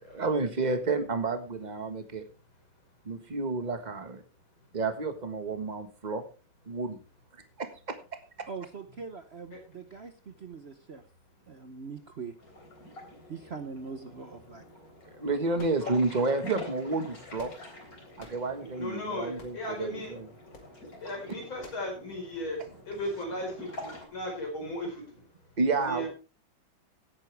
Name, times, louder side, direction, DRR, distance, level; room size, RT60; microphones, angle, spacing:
voice 1, 0.1-2.2 3.0-4.2 4.7-6.2 6.6-7.0 8.4-8.5 15.2-17.5 18.2-20.3 25.6-26.1, right 3 dB, 25° right, 8 dB, 1.4 m, -30 dB
voice 2, 8.5-11.0 11.5-12.3 13.3-14.7, right 5 dB, 50° right, 9 dB, 0.7 m, -42 dB
sound 1, 12.4-24.1, left 2 dB, 45° left, 4.0 m, -47 dB
sound 2, 15.5-16.3 17.1-17.8 18.2-18.5 19.4-19.7 20.5-20.7 21.6-21.9, left 3 dB, 65° left, 3.0 m, -51 dB
voice 3, 18.6-20.2 21.0-25.3 25.8-26.1, left 1 dB, 85° left, 1 dB, 5.5 m, -36 dB
17.0 x 8.9 x 3.4 m, 0.34 s
omnidirectional pair, 2.1 m